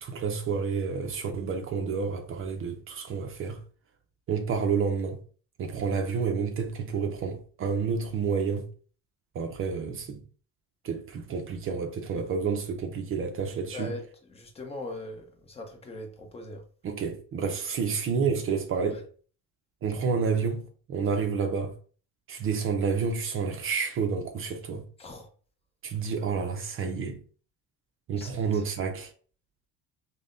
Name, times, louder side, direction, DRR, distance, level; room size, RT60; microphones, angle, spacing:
voice 1, 0.0-3.6 4.3-5.2 5.6-8.7 9.3-10.2 10.8-13.9 16.8-19.1 19.8-20.6 20.9-21.8 22.3-24.9 25.8-27.2 28.1-29.1, right 5 dB, 40° right, 0.5 m, -29 dB
voice 2, 13.7-14.0 14.3-16.6 18.9-19.0 25.0-25.3 28.2-28.6, left 2 dB, 15° left, 0.7 m, -40 dB
5.4 x 2.1 x 2.5 m
cardioid pair, 160°, 35 cm